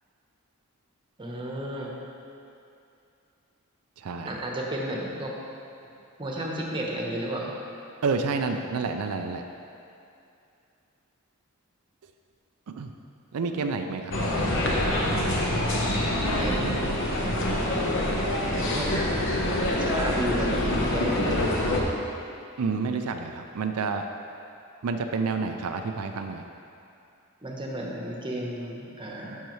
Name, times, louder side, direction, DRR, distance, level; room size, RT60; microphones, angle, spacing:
voice 1, 1.2-1.9 4.2-5.3 6.2-7.6 16.3-16.9 18.5-19.1 19.8-21.4 27.4-29.4, right 1 dB, 25° right, -2 dB, 1.0 m, -32 dB
voice 2, 4.0-4.4 8.0-9.4 12.7-12.9 13.3-14.1 22.6-24.1 24.8-26.5, right 4 dB, 90° right, 5 dB, 0.4 m, -29 dB
sound 1, 14.1-21.8, left 1 dB, 60° left, 1.0 m, -26 dB
10.0 x 6.4 x 3.1 m, 2.6 s
head